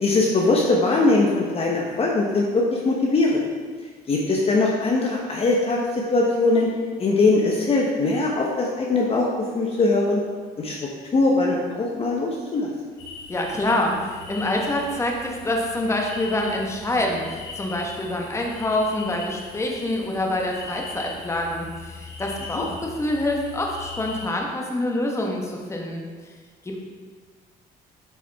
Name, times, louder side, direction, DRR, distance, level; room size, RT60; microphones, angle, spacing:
voice 1, 0.0-3.5 4.1-6.7 7.0-9.3 9.5-10.2 10.6-10.8 11.1-12.7 22.5-22.6, left 3 dB, 35° left, -2 dB, 1.0 m, -21 dB
sound 1, 13.0-24.3, left 4 dB, 85° left, 1.8 m, -40 dB
voice 2, 13.3-26.0 26.6-26.8, left 1 dB, 15° left, 0 dB, 1.2 m, -26 dB
8.1 x 6.0 x 3.5 m, 1.6 s
cardioid pair, 110°, 17 cm